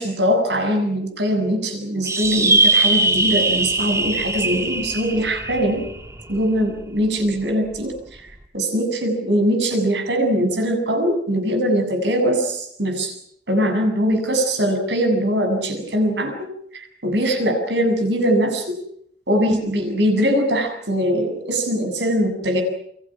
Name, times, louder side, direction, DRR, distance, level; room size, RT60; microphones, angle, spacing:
voice 1, 0.0-5.9 6.3-8.2 8.5-13.2 13.5-16.3 16.7-18.8 19.3-22.6, equal, 70° right, 5 dB, 7.8 m, -21 dB
sound 1, 2.1-6.8, right 2 dB, 15° right, 2.7 m, -21 dB
29.5 x 24.0 x 6.2 m, 0.68 s
head